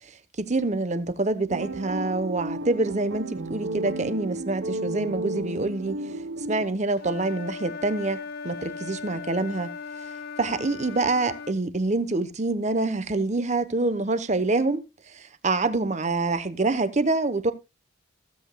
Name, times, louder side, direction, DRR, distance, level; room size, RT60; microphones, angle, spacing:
voice 1, 0.4-6.0 6.5-9.7 10.4-14.8 15.4-17.5, right 2 dB, 35° right, 0.9 m, -26 dB
sound 1, 1.5-6.7, right 2 dB, 85° right, 1.0 m, -33 dB
Wind instrument woodwind instrument, 7.0-11.6, left 4 dB, 50° left, 0.7 m, -38 dB
16.0 x 8.1 x 2.3 m
head